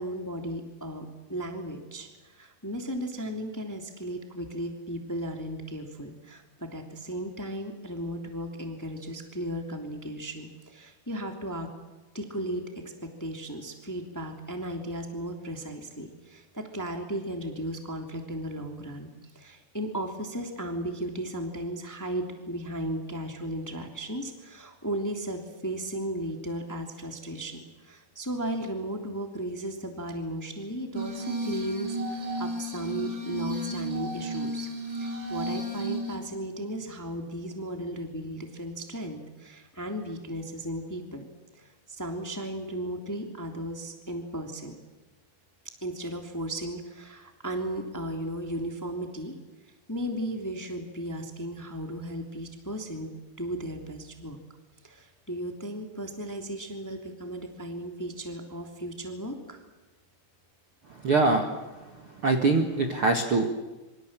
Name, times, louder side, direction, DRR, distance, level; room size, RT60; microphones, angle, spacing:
voice 1, 0.0-11.7 12.1-12.6 13.2-34.7 35.0-41.3 41.5-44.7 45.8-49.3 49.9-53.1 53.4-54.4 54.8-59.6, right 1 dB, 5° left, 3 dB, 1.9 m, -35 dB
Glass, 30.9-36.2, right 1 dB, 30° right, 4.1 m, -33 dB
voice 2, 61.0-61.5 62.2-63.5, right 3 dB, 45° right, 4 dB, 1.8 m, -23 dB
26.5 x 25.5 x 7.6 m, 1.2 s
omnidirectional pair, 4.9 m